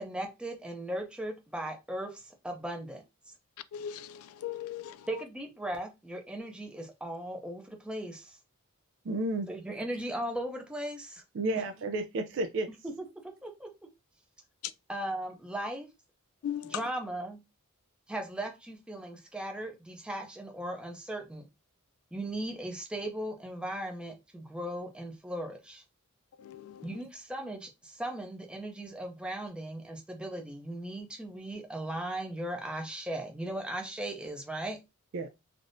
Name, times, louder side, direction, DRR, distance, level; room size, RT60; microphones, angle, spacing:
voice 1, 0.0-3.0 5.1-8.4 9.5-11.2 12.8-13.9 14.9-15.9 16.6-17.4 18.1-21.5 22.1-25.8 26.8-34.8, right 1 dB, 5° right, 0.5 m, -38 dB
voice 2, 3.7-5.1 16.4-16.8 26.4-26.9, left 10 dB, 65° left, 0.3 m, -38 dB
voice 3, 9.0-9.5 11.3-12.7 35.1-35.3, right 2 dB, 60° right, 0.4 m, -31 dB
3.4 x 2.4 x 2.6 m
head